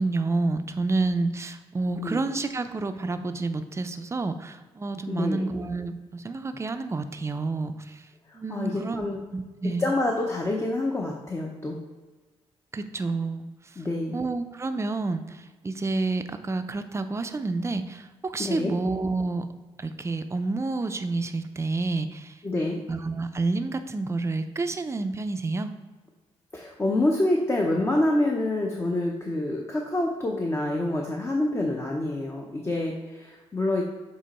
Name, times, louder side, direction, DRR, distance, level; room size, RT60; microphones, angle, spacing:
voice 1, 0.0-8.1 8.3-9.9 12.7-13.8 14.1-19.5 19.8-25.7, right 3 dB, 25° right, 9 dB, 0.5 m, -29 dB
voice 2, 5.1-5.4 8.3-9.2 9.8-11.8 13.8-14.2 18.4-18.7 22.4-22.8 26.5-33.8, left 1 dB, 25° left, 0 dB, 0.7 m, -27 dB
7.5 x 3.0 x 4.2 m, 1.3 s
cardioid pair, 85°, 11 cm